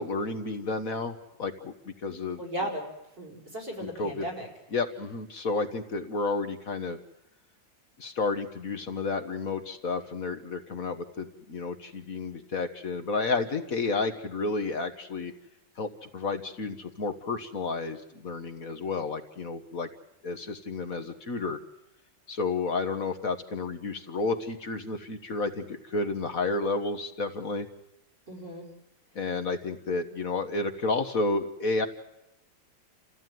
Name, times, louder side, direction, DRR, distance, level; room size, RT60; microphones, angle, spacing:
voice 1, 0.0-2.4 3.8-4.3 4.7-7.0 8.0-15.3 15.8-19.9 20.2-21.6 22.3-27.7 29.1-31.9, left 3 dB, 50° left, 7 dB, 1.6 m, -31 dB
voice 2, 2.4-2.9 3.2-4.5 28.3-28.7, right 1 dB, 70° right, 1 dB, 5.6 m, -35 dB
29.0 x 15.0 x 9.3 m, 0.87 s
omnidirectional pair, 2.0 m